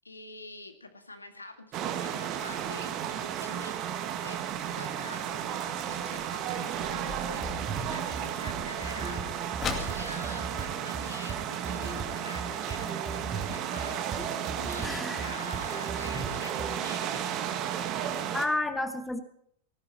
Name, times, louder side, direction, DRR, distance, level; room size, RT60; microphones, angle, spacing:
voice 1, 0.0-3.8 4.1-4.4 4.7-9.2 9.6-17.3, left 2 dB, 80° left, 7 dB, 1.7 m, -46 dB
sound 1, 1.7-18.5, right 9 dB, 35° right, 1.7 m, -34 dB
sound 2, 2.5-11.7 12.1-12.2 12.4-12.8 13.3-13.4 13.9-14.0 14.3-14.4 14.8-14.9, left 5 dB, 25° left, 2.4 m, -43 dB
sound 3, 7.1-16.8, right 3 dB, 20° right, 2.7 m, -39 dB
voice 2, 14.2-15.3 18.3-19.2, left 2 dB, 5° left, 8 dB, 1.5 m, -32 dB
18.5 x 15.5 x 4.2 m, 0.67 s
figure-of-eight pair, 90°, 0 cm